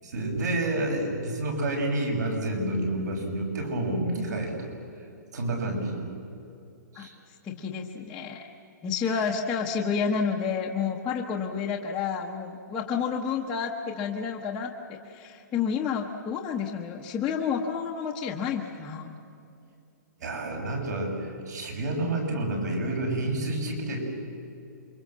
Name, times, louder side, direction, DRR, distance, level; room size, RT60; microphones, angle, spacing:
voice 1, 0.0-4.7 5.3-6.1 6.9-7.1 9.0-9.3 20.2-24.0, right 1 dB, 60° right, 2 dB, 6.9 m, -29 dB
voice 2, 7.4-8.4 8.8-19.1, left 6 dB, 10° left, -5 dB, 1.1 m, -30 dB
28.5 x 24.5 x 7.6 m, 2.6 s
hypercardioid pair, 175°, 10 cm